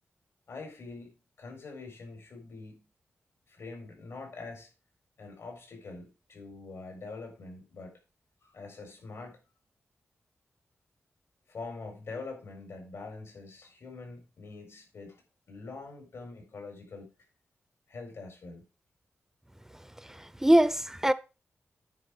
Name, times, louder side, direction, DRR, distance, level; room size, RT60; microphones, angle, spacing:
voice 1, 0.5-2.9 3.5-4.7 5.2-8.0 8.4-9.4 11.5-15.2 15.5-17.1 17.9-18.6, left 3 dB, 85° left, 4.6 m, -44 dB
voice 2, 20.1-21.1, right 1 dB, 10° right, 0.6 m, -23 dB
9.6 x 4.9 x 6.6 m
wide cardioid pair, 95°, 4 cm